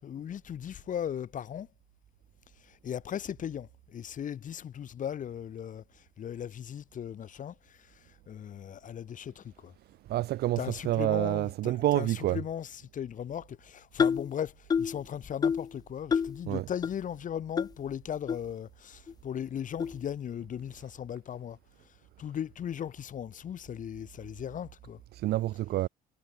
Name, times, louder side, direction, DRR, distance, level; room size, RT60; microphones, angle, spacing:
voice 1, 0.0-1.7 2.6-9.7 10.6-21.6 22.2-25.0, left 9 dB, 50° left, 3.4 m, -38 dB
voice 2, 10.1-12.4 16.5-16.6 25.1-25.9, right 15 dB, 70° right, 1.1 m, -28 dB
sound 1, 14.0-14.3 14.7-15.0 15.4-15.7 16.1-16.4 16.8-16.9 17.6-17.7 18.3-18.4 19.1-19.2 19.8-20.0, left 6 dB, 25° left, 0.3 m, -27 dB
cardioid pair, 110°, 17 cm